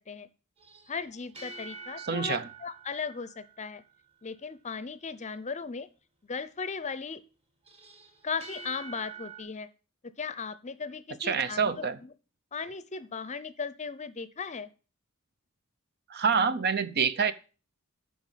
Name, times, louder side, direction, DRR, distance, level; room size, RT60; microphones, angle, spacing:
sound 1, 0.6-4.1 7.7-9.4, right 4 dB, 25° right, 1.9 m, -46 dB
voice 1, 0.9-3.8 4.2-5.9 6.2-7.2 8.2-9.7 10.2-12.1 12.5-14.7, left 5 dB, 30° left, 15 dB, 0.7 m, -37 dB
voice 2, 2.1-2.4 11.2-12.0 16.1-17.3, right 6 dB, 45° right, 13 dB, 0.7 m, -26 dB
9.2 x 6.2 x 7.3 m, 0.35 s
head